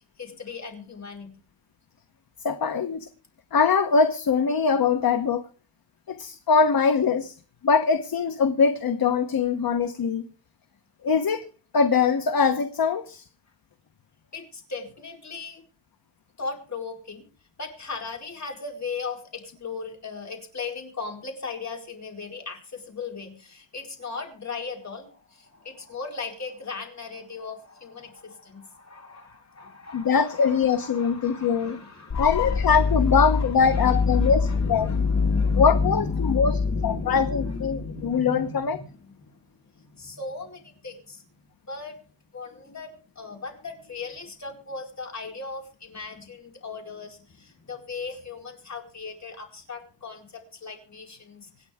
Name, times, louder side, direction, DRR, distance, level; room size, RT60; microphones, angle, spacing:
voice 1, 0.0-1.3 14.3-15.6 16.4-17.3 17.6-32.9 33.4-41.2 41.6-42.0 42.3-51.5, left 4 dB, 40° left, 4.5 m, -37 dB
voice 2, 2.4-3.1 3.5-5.4 6.1-7.3 7.6-10.2 11.0-11.5 11.7-13.2 29.9-31.8 32.2-34.4 34.7-34.9 35.6-36.6 36.8-38.8, left 5 dB, 55° left, 1.1 m, -22 dB
sound 1, 32.1-38.0, left 4 dB, 70° left, 3.7 m, -25 dB
26.0 x 9.0 x 3.6 m
wide cardioid pair, 135°, 43 cm